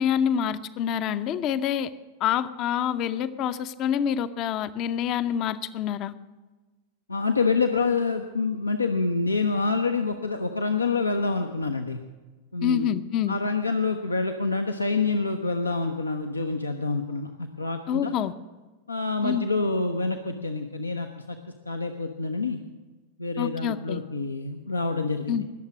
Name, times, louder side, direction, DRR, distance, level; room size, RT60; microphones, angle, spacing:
voice 1, 0.0-1.9 2.2-6.1 12.6-13.4 17.9-18.3 19.2-19.5 23.4-24.0 25.3-25.4, left 9 dB, 35° left, 14 dB, 0.6 m, -26 dB
voice 2, 7.1-12.0 12.5-13.0 13.3-18.1 18.9-21.4 21.7-22.6 23.2-25.4, left 3 dB, 80° left, 5 dB, 0.7 m, -27 dB
20.0 x 7.3 x 6.2 m, 1.2 s
figure-of-eight pair, 90°, 0 cm